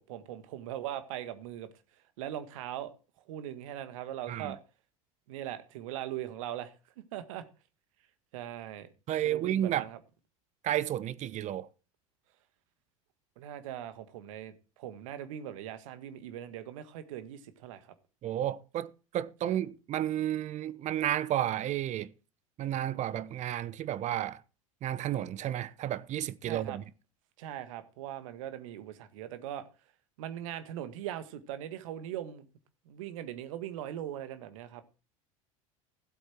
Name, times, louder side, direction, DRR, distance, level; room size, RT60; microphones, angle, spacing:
voice 1, 0.1-1.7 2.2-2.9 3.3-4.6 5.3-7.4 8.3-8.9 9.2-10.0 13.4-17.9 19.5-19.6 26.5-26.8 27.4-29.7 30.2-32.5 32.9-34.8, right 11 dB, 65° right, 1.8 m, -40 dB
voice 2, 9.1-9.9 10.6-11.7 18.2-22.1 22.6-24.4 24.8-26.8, right 12 dB, 40° right, 0.9 m, -32 dB
15.5 x 8.1 x 4.5 m
hypercardioid pair, 75°, 18 cm